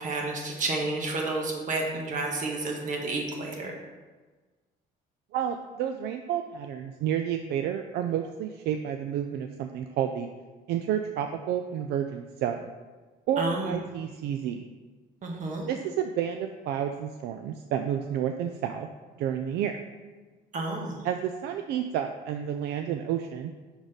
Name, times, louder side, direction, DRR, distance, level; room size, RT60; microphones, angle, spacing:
voice 1, 0.0-3.7 13.4-13.7 15.2-15.7 20.5-21.0, right 2 dB, 50° right, 1 dB, 1.4 m, -30 dB
voice 2, 5.3-10.3 10.7-12.7 13.3-14.6 15.7-18.9 19.2-19.8 21.0-23.5, right 9 dB, 75° right, 6 dB, 0.4 m, -30 dB
6.1 x 4.0 x 5.1 m, 1.3 s
cardioid pair, 110°, 17 cm